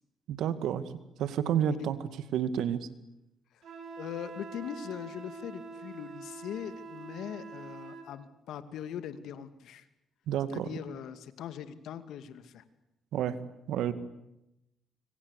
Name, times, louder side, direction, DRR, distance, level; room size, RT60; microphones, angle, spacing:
voice 1, 0.3-0.9 1.2-2.0 2.3-2.9 10.3-10.7 13.1-13.4 13.7-13.9, right 9 dB, 80° right, 13 dB, 2.2 m, -29 dB
Wind instrument woodwind instrument, 3.6-8.1, right 4 dB, 60° right, 6.3 m, -45 dB
voice 2, 4.0-9.9 10.5-12.6, left 9 dB, 80° left, 11 dB, 2.4 m, -41 dB
25.5 x 25.5 x 8.4 m, 0.87 s
cardioid pair, 90°, 0 cm